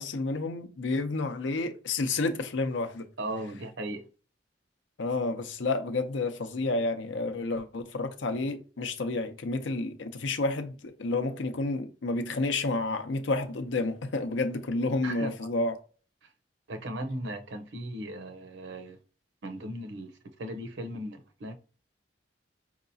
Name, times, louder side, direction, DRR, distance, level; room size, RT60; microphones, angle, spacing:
voice 1, 0.0-3.1 5.0-15.8, left 3 dB, 85° left, 0.6 m, -30 dB
voice 2, 3.2-4.1 15.0-15.4 16.2-16.3 16.7-19.0 19.4-21.6, right 1 dB, 80° right, 0.7 m, -37 dB
4.8 x 2.9 x 2.7 m
head